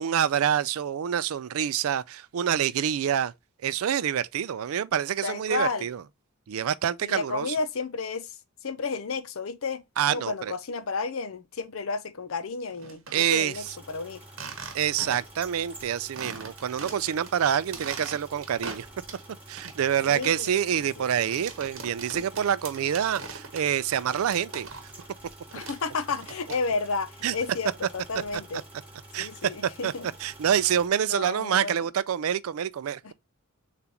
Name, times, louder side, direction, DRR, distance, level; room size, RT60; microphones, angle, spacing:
voice 1, 0.0-3.3 3.6-6.0 6.5-7.6 10.0-10.5 13.1-13.6 14.7-18.9 19.5-24.7 27.2-27.3 29.1-29.9 30.2-33.0, right 9 dB, 80° right, 0.4 m, -27 dB
voice 2, 5.2-5.9 7.0-8.4 8.6-9.8 10.1-14.2 20.0-21.3 25.5-28.6 29.2-30.1 31.1-31.8 33.0-33.1, left 4 dB, 70° left, 0.6 m, -32 dB
sound 1, 12.7-13.4 14.3-15.4 15.7-15.8 16.2-17.3 17.6-19.3 19.6-25.1 25.3-26.9, right 4 dB, 60° right, 1.0 m, -41 dB
sound 2, 13.5-30.9, right 1 dB, 5° right, 1.5 m, -49 dB
6.9 x 2.5 x 2.8 m
head